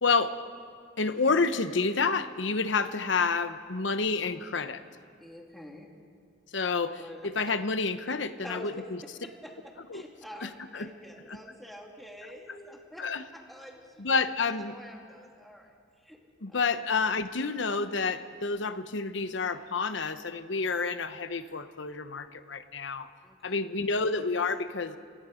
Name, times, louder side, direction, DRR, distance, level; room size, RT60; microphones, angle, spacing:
voice 1, 0.0-0.3 1.0-4.8 6.5-9.0 9.9-10.0 10.4-10.9 13.0-13.2 14.0-14.7 16.4-23.1 23.4-25.0, left 4 dB, 70° left, 11 dB, 1.0 m, -29 dB
voice 2, 5.2-5.9 7.0-7.3 8.4-8.8 9.2-9.5 9.9-13.1 13.3-14.1 14.7-15.7 16.0-16.2 16.5-16.6 23.2-23.6, equal, ahead, 0 dB, 2.4 m, -47 dB
30.0 x 17.5 x 5.1 m, 2.2 s
head